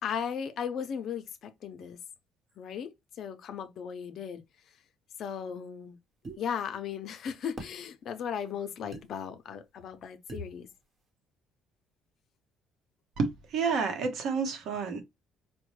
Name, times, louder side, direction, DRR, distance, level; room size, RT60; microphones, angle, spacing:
voice 1, 0.0-2.0 2.6-2.9 3.2-4.4 5.2-6.0 6.4-10.7, left 7 dB, 55° left, 0.6 m, -36 dB
sound 1, 6.2-6.4 7.6-7.8 8.9-9.1 10.3-10.5, right 3 dB, 35° right, 1.1 m, -41 dB
voice 2, 13.2-15.0, right 5 dB, 65° right, 1.0 m, -30 dB
4.3 x 2.2 x 3.1 m
cardioid pair, 110°, 0 cm